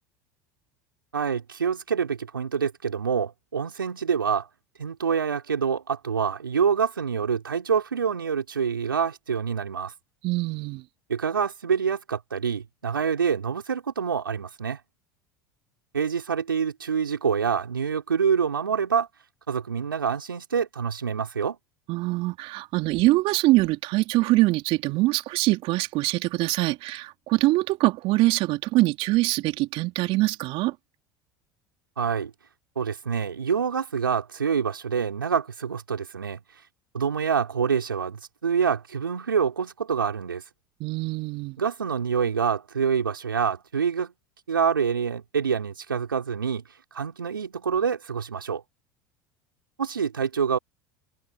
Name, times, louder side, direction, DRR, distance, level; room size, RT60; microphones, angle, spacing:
voice 1, 1.1-4.5 4.8-9.9 11.1-14.8 15.9-19.1 19.5-21.6 32.0-32.3 32.7-36.4 36.9-40.4 41.6-44.1 44.5-46.6 46.9-48.6 49.8-50.6, right 6 dB, 85° right, 4.9 m, -26 dB
voice 2, 10.2-10.8 21.9-30.8 40.8-41.6, right 20 dB, 55° right, 3.5 m, -23 dB
hypercardioid pair, 75°, 11 cm